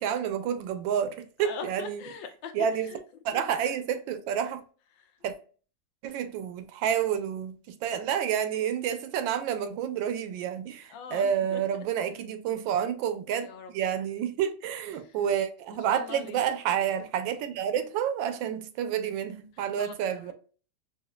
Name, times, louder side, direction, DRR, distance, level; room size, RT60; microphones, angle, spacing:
voice 1, 0.0-2.0 2.5-2.9 3.2-4.6 5.2-5.3 6.0-20.3, right 9 dB, 80° right, 1.3 m, -29 dB
voice 2, 1.4-3.0 3.3-3.4 10.9-11.6 12.5-12.6 13.4-13.7 14.9-15.1 15.9-16.4 19.6-20.3, left 5 dB, 85° left, 1.4 m, -42 dB
4.9 x 2.4 x 2.3 m
omnidirectional pair, 2.1 m